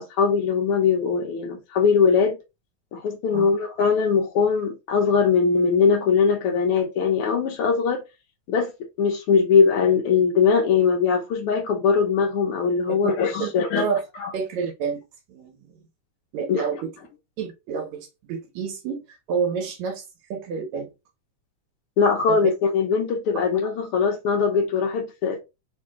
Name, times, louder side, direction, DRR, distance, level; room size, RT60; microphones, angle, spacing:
voice 1, 0.0-2.4 2.9-8.0 8.5-8.7 9.0-13.8 14.2-14.3 16.5-16.6 22.0-25.4, left 5 dB, 75° left, 1.3 m, -21 dB
voice 2, 14.3-15.0 15.3-15.7 16.3-16.9 17.4-20.0 20.3-20.9 22.3-22.4, right 6 dB, 75° right, 2.0 m, -29 dB
4.6 x 2.6 x 3.4 m
omnidirectional pair, 3.4 m